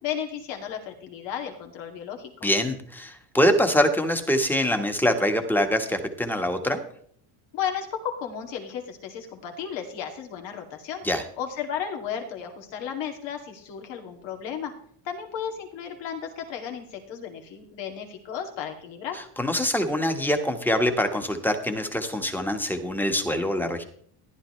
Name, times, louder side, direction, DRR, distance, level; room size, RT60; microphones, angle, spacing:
voice 1, 0.0-2.5 7.5-11.0 11.4-14.7 15.0-19.2, left 8 dB, 70° left, 4 dB, 2.6 m, -34 dB
voice 2, 2.4-6.8 11.0-11.2 19.4-23.8, equal, 5° left, 6 dB, 1.5 m, -24 dB
14.5 x 11.0 x 3.3 m, 0.62 s
cardioid pair, 120°, 46 cm